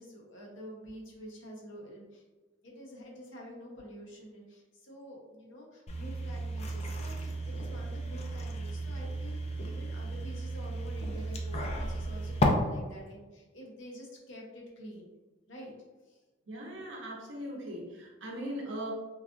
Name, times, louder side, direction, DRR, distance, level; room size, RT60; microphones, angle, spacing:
voice 1, 0.0-2.2 2.6-15.1 15.5-15.7 16.1-16.2, equal, 75° left, -2 dB, 0.8 m, -48 dB
sound 1, 5.9-12.5, equal, 35° left, 0.3 m, -34 dB
voice 2, 16.5-18.9, equal, 75° right, -1 dB, 0.7 m, -39 dB
3.2 x 2.3 x 2.4 m, 1.2 s
head